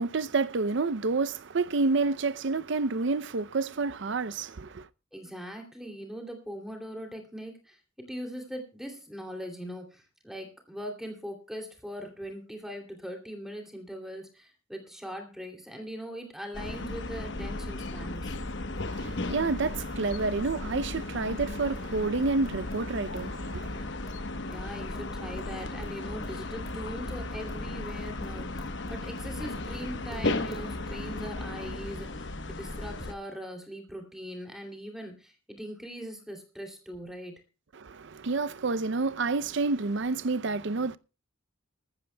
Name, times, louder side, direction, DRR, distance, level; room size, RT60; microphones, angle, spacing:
voice 1, 0.0-4.9 18.8-23.9 37.7-41.0, right 3 dB, 60° right, 0.5 m, -29 dB
voice 2, 5.1-18.4 24.4-37.3, equal, ahead, 2.7 m, -41 dB
sound 1, 16.5-33.1, left 2 dB, 60° left, 1.0 m, -35 dB
sound 2, 17.8-23.3 23.6-29.3 29.7-30.7, equal, 20° left, 3.7 m, -50 dB
19.5 x 15.0 x 2.2 m
head